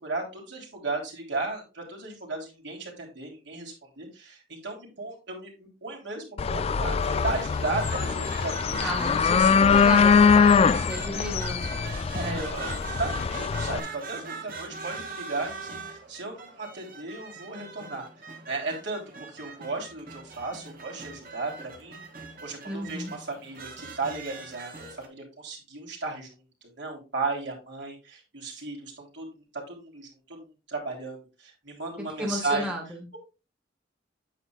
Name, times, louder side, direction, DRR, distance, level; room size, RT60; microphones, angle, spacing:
voice 1, 0.0-8.9 12.1-18.1 18.5-22.0 22.4-26.3 26.8-32.7, right 3 dB, 65° right, -1 dB, 3.3 m, -35 dB
sound 1, 6.4-13.8, left 6 dB, 30° left, 0.3 m, -22 dB
sound 2, 6.9-25.1, right 4 dB, 50° right, 1.8 m, -41 dB
voice 2, 8.8-11.8 12.1-12.4 22.6-23.1 32.2-33.0, equal, 5° right, 0 dB, 1.7 m, -33 dB
9.0 x 8.0 x 2.3 m, 0.30 s
head